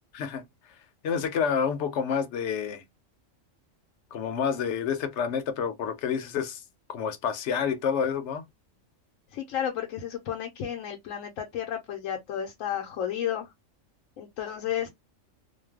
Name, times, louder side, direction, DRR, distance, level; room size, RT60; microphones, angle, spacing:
voice 1, 1.0-2.8 4.1-6.6 6.9-8.4, left 7 dB, 65° left, 0.9 m, -28 dB
voice 2, 9.3-13.5 14.2-14.9, left 9 dB, 90° left, 1.0 m, -32 dB
2.5 x 2.2 x 3.3 m
omnidirectional pair, 1.3 m